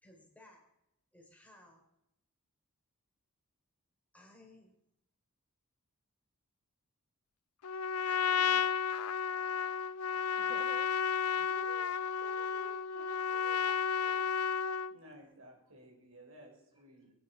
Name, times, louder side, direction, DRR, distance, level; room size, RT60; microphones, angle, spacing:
voice 1, 0.0-0.7 1.1-1.8 4.1-4.8 7.7-8.7, left 1 dB, 5° left, 0 dB, 3.9 m, -59 dB
Trumpet, 7.6-15.0, left 7 dB, 80° left, 0.5 m, -32 dB
voice 2, 10.4-10.9 11.5-11.9 12.2-14.3, right 2 dB, 20° right, 5 dB, 1.0 m, -53 dB
voice 3, 14.9-17.1, equal, 70° right, 0 dB, 5.8 m, -56 dB
21.5 x 9.8 x 5.8 m, 0.84 s
head